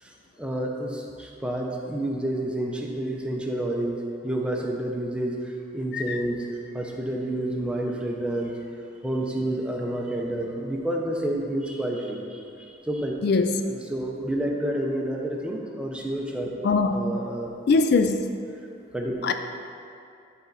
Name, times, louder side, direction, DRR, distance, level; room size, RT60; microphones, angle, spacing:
voice 1, 0.0-4.0 4.2-6.4 6.7-8.5 9.0-13.1 13.7-17.5 18.9-19.1, right 1 dB, 5° right, -1 dB, 0.7 m, -29 dB
voice 2, 13.2-13.5 16.6-17.1 17.7-18.2 19.2-19.3, left 4 dB, 60° left, 8 dB, 0.3 m, -21 dB
10.5 x 4.3 x 4.0 m, 2.5 s
head